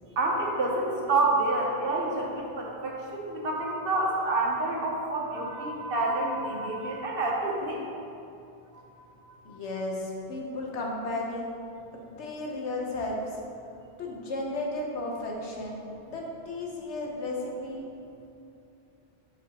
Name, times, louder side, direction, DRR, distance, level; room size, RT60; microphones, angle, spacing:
voice 1, 0.2-7.9 8.7-8.8, right 2 dB, 60° right, -1 dB, 0.9 m, -28 dB
voice 2, 9.4-11.5 11.9-13.2 14.0-15.8 16.1-17.8, left 2 dB, 85° left, -1 dB, 1.2 m, -34 dB
7.3 x 4.6 x 2.9 m, 2.7 s
omnidirectional pair, 1.1 m